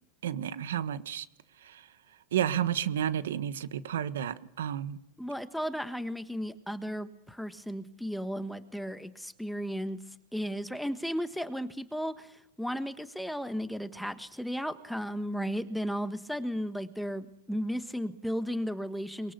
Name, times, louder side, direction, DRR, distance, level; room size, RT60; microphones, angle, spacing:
voice 1, 0.2-1.2 1.6-1.8 2.3-5.0, right 10 dB, 90° right, 13 dB, 1.4 m, -31 dB
voice 2, 5.2-10.0 10.3-19.3, equal, ahead, 10 dB, 1.3 m, -34 dB
23.5 x 22.5 x 6.9 m, 0.77 s
supercardioid pair, 140°, 0 cm